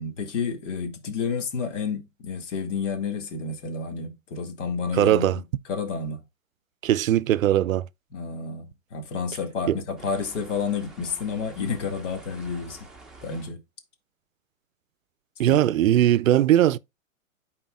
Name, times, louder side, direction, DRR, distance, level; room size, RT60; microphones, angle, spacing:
voice 1, 0.0-5.4 5.7-6.2 8.1-12.9 13.2-13.6 15.5-15.6, left 5 dB, 60° left, 2.1 m, -30 dB
voice 2, 4.9-5.4 6.8-7.9 9.7-9.8 15.4-16.8, right 12 dB, 75° right, 0.5 m, -20 dB
sound 1, 10.0-13.5, right 2 dB, ahead, 1.0 m, -48 dB
12.5 x 4.4 x 2.3 m
hypercardioid pair, 130°, 40 cm